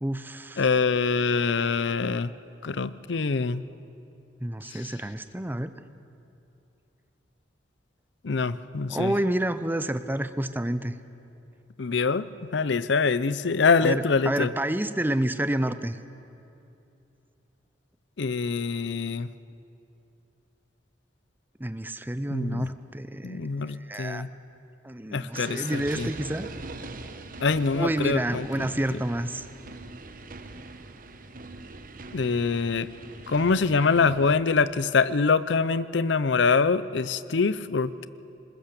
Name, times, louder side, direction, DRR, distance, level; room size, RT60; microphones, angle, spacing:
voice 1, 0.0-0.7 4.4-5.7 8.9-10.9 13.8-16.0 21.6-24.2 24.8-26.5 27.7-29.4, right 1 dB, 10° right, 12 dB, 0.6 m, -29 dB
voice 2, 0.6-2.3 2.6-3.6 8.2-9.1 11.8-12.3 12.5-14.5 18.2-19.3 22.3-22.7 23.2-24.3 25.1-26.1 27.4-28.7 32.1-32.9 33.3-38.1, left 4 dB, 70° left, 16 dB, 0.6 m, -24 dB
sound 1, 25.3-34.3, right 3 dB, 50° right, 1.0 m, -42 dB
20.5 x 20.5 x 6.7 m, 2.7 s
head